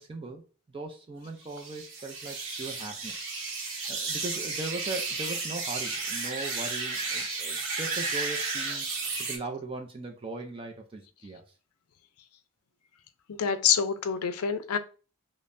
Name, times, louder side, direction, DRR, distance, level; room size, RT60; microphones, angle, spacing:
voice 1, 0.0-3.3 3.9-8.9 9.3-11.4, right 3 dB, 25° right, 3 dB, 0.4 m, -39 dB
sound 1, 1.5-9.4, right 4 dB, 60° right, 0.9 m, -33 dB
voice 2, 13.3-14.8, left 7 dB, 90° left, 10 dB, 0.5 m, -26 dB
5.2 x 2.1 x 2.6 m, 0.35 s
head